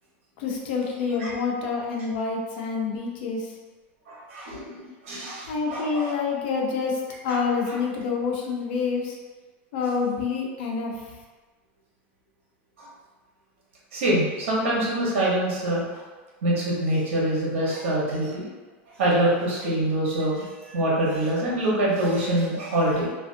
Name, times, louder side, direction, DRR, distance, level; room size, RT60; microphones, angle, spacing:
voice 1, 0.4-3.5 5.4-9.2 9.7-11.1, left 5 dB, 60° left, -1 dB, 0.6 m, -27 dB
voice 2, 4.1-6.1 7.3-7.4 12.8-12.9 13.9-16.0 16.4-18.4 19.0-20.5 20.7-23.1, right 1 dB, 85° right, -5 dB, 1.0 m, -25 dB
2.5 x 2.4 x 2.5 m, 1.3 s
supercardioid pair, 160°, 7 cm